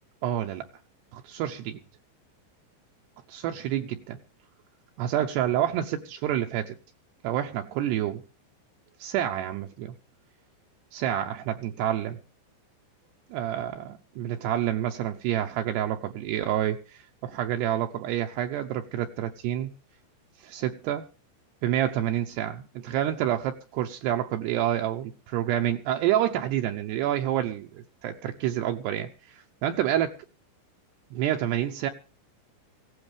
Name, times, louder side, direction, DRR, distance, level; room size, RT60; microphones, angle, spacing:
voice 1, 0.2-0.7 1.1-1.8 3.3-4.2 5.0-6.8 7.2-8.2 9.0-9.9 10.9-12.2 13.3-19.7 20.4-21.1 21.6-30.2 31.1-31.9, right 11 dB, 75° right, 4 dB, 2.7 m, -28 dB
18.0 x 16.0 x 3.4 m, 0.34 s
omnidirectional pair, 5.3 m